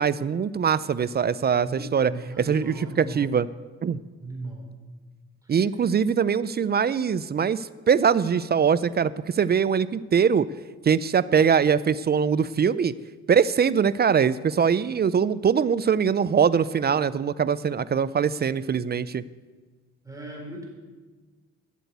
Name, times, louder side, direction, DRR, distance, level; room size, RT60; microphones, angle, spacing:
voice 1, 0.0-3.5 3.8-4.0 5.5-10.5 10.8-12.9 13.3-19.2, right 7 dB, 35° right, 17 dB, 0.4 m, -22 dB
voice 2, 1.6-3.3 4.2-4.7 5.4-5.6 20.0-20.6, right 2 dB, 10° right, 0 dB, 4.0 m, -38 dB
12.5 x 8.2 x 8.1 m, 1.3 s
cardioid pair, 90°, 30 cm